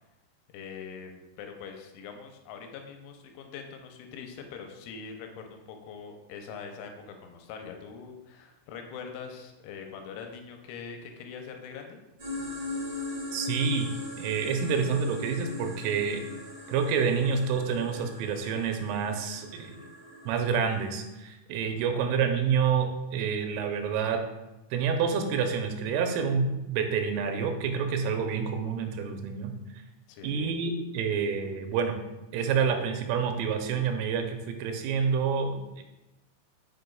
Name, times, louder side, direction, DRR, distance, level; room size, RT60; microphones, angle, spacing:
voice 1, 0.5-12.0 21.9-22.1 30.1-30.6, left 6 dB, 85° left, 4 dB, 3.0 m, -43 dB
sound 1, 12.2-20.9, left 2 dB, 60° right, 0.9 m, -39 dB
voice 2, 13.3-13.9 14.2-16.2 16.7-19.8 20.3-24.2 24.7-29.8 30.2-32.0 32.3-35.8, right 6 dB, 90° right, 5 dB, 3.2 m, -28 dB
6.7 x 6.2 x 2.3 m, 0.98 s
omnidirectional pair, 5.6 m